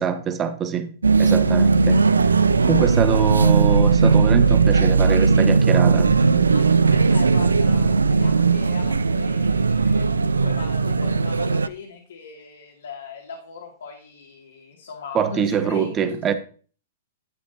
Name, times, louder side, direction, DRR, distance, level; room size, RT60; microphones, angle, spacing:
voice 1, 0.0-2.3 2.6-6.6 15.1-16.3, right 7 dB, 25° right, 1.0 m, -24 dB
sound 1, 1.0-11.7, right 4 dB, 90° right, 0.4 m, -18 dB
voice 2, 2.6-3.2 6.5-16.0, left 5 dB, 75° left, 2.2 m, -39 dB
11.5 x 8.3 x 2.8 m
hypercardioid pair, 110°, 0 cm